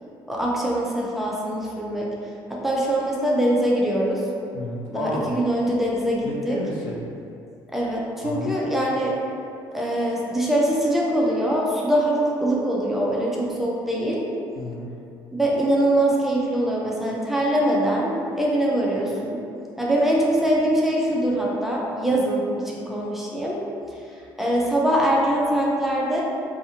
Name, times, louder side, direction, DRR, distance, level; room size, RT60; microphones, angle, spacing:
voice 1, 0.3-2.1 2.5-4.2 4.9-6.6 7.7-9.2 9.7-14.2 15.3-19.4 19.8-23.6 24.4-26.2, right 1 dB, 5° right, -4 dB, 0.4 m, -23 dB
voice 2, 4.5-5.4 6.2-7.0 8.2-8.9 14.5-14.9, left 1 dB, 85° left, -2 dB, 0.4 m, -31 dB
2.5 x 2.4 x 2.7 m, 2.6 s
cardioid pair, 115°, 8 cm